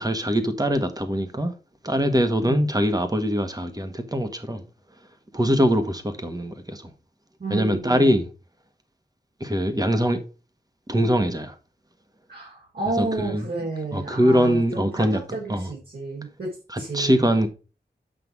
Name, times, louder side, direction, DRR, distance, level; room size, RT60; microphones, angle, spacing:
voice 1, 0.0-1.5 1.8-4.6 5.3-6.9 7.5-8.2 9.4-10.2 10.9-11.6 13.0-13.5 13.9-15.7 16.7-17.5, equal, 20° right, 1.6 m, -23 dB
voice 2, 7.4-8.2 12.3-16.5 16.8-17.2, right 2 dB, 65° right, 4.2 m, -31 dB
7.8 x 5.8 x 4.7 m
wide cardioid pair, 65°, 18 cm